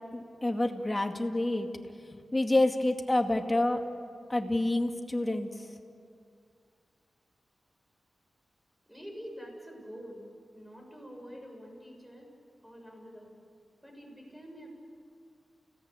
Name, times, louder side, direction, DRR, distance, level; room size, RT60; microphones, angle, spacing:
voice 1, 0.1-1.7 2.1-3.8 4.3-5.5, left 1 dB, 25° left, 4 dB, 2.2 m, -28 dB
voice 2, 8.9-10.3 10.5-12.3 12.6-13.3 13.8-14.7, equal, 5° right, 0 dB, 7.2 m, -46 dB
30.0 x 17.5 x 8.5 m, 2.3 s
cardioid pair, 65°, 0 cm